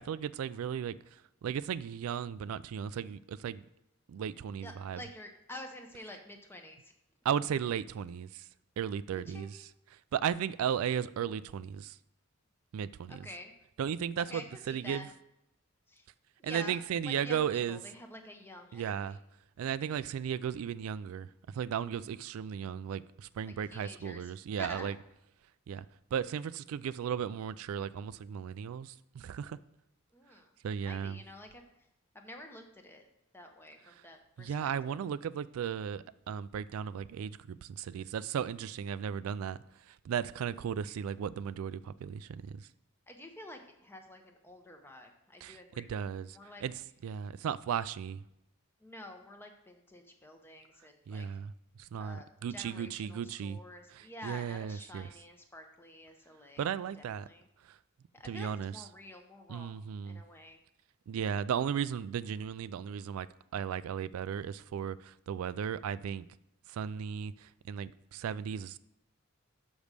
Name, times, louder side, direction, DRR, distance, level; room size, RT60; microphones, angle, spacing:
voice 1, 0.0-3.6 4.1-5.0 7.2-8.4 8.8-9.5 10.1-12.0 12.7-13.2 13.8-15.1 16.4-17.8 18.7-19.2 19.6-24.9 25.7-25.9 26.1-29.6 30.6-31.2 34.4-39.6 39.9-42.7 45.4-46.3 46.6-46.7 47.0-48.2 51.1-51.5 51.8-53.6 53.9-55.1 56.6-57.3 57.6-57.8 58.2-58.7 59.5-60.2 61.1-63.3 63.5-66.3 66.7-68.8, right 8 dB, 85° right, 0.3 m, -35 dB
voice 2, 4.6-6.9 9.3-9.5 13.1-13.5 14.2-15.1 15.9-16.1 16.4-16.8 17.0-19.2 23.7-24.3 24.6-24.9 30.1-30.5 30.8-31.6 32.1-33.1 33.3-35.0 43.1-45.9 46.3-46.6 48.8-51.3 52.0-56.7 57.0-57.5 58.1-59.8 60.0-60.6, left 1 dB, 10° left, 0.9 m, -49 dB
6.2 x 5.2 x 6.6 m
head